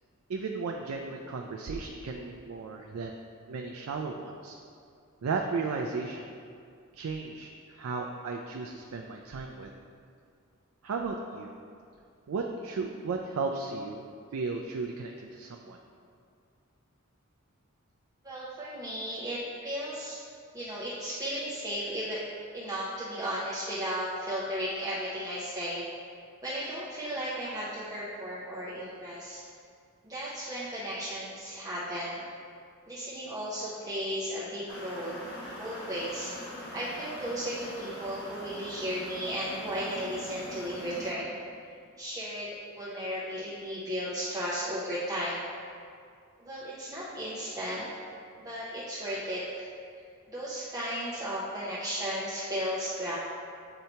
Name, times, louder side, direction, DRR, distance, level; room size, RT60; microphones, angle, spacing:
voice 1, 0.3-3.2 3.5-4.6 5.2-6.3 6.9-9.7 10.8-11.5 12.3-14.0 14.3-15.8, right 4 dB, 75° right, 2 dB, 0.4 m, -35 dB
voice 2, 18.2-20.2 20.5-22.2 22.5-25.9 26.4-29.4 30.0-32.2 32.9-35.2 35.6-36.4 36.7-41.3 42.0-42.5 42.7-45.5 46.4-47.9 48.4-49.7 50.3-53.1, equal, 15° right, -10 dB, 0.8 m, -35 dB
sound 1, 34.7-41.1, left 1 dB, 60° left, 1.2 m, -42 dB
7.9 x 2.8 x 4.4 m, 2.3 s
head